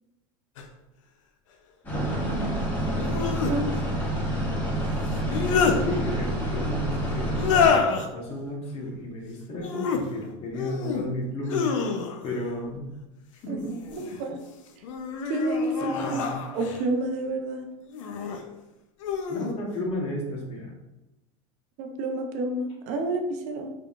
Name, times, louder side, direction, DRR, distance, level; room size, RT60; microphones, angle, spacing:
sound 1, 0.6-0.7 2.9-3.6 5.1-5.8 7.3-8.1 9.5-10.0 10.5-11.0 11.4-12.3 13.6-14.2 14.8-16.8 17.9-18.4 19.0-19.5, left 6 dB, 85° left, 0.6 m, -27 dB
sound 2, 1.8-7.7, right 1 dB, 10° left, 1.4 m, -28 dB
voice 1, 5.8-11.7 12.2-12.9 13.3-13.7 14.1-14.2 15.8-16.4 19.3-20.7, left 1 dB, 40° left, 0 dB, 1.1 m, -33 dB
voice 2, 13.9-14.4 15.3-16.2 16.5-17.6 21.8-23.7, right 2 dB, 50° right, 4 dB, 0.6 m, -29 dB
3.7 x 3.6 x 2.4 m, 0.98 s
supercardioid pair, 130°, 16 cm